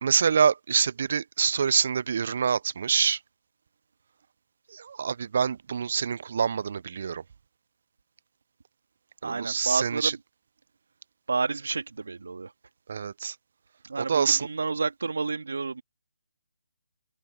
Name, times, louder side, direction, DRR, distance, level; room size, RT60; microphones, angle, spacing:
voice 1, 0.0-3.2 4.7-7.2 9.2-10.1 12.9-13.4 14.1-14.5, right 6 dB, 50° right, 0.5 m, -26 dB
voice 2, 9.2-10.2 11.3-12.5 13.8-15.8, right 4 dB, 70° right, 2.0 m, -30 dB
figure-of-eight pair, 150°, 0 cm